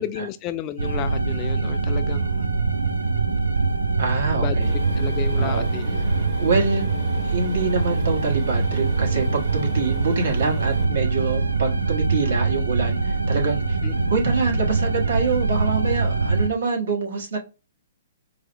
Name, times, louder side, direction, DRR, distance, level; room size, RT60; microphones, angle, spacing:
voice 1, 0.0-2.5 4.3-6.0 13.8-13.9, left 11 dB, 30° left, 0.3 m, -32 dB
sound 1, 0.8-16.5, right 3 dB, 80° right, 0.5 m, -23 dB
voice 2, 4.0-4.7 5.4-5.7 6.4-6.8 7.2-13.8 14.1-17.4, right 4 dB, 60° right, 1.2 m, -25 dB
sound 2, 4.6-10.8, right 6 dB, 25° right, 1.0 m, -38 dB
4.6 x 2.1 x 2.9 m
figure-of-eight pair, 120°, 0 cm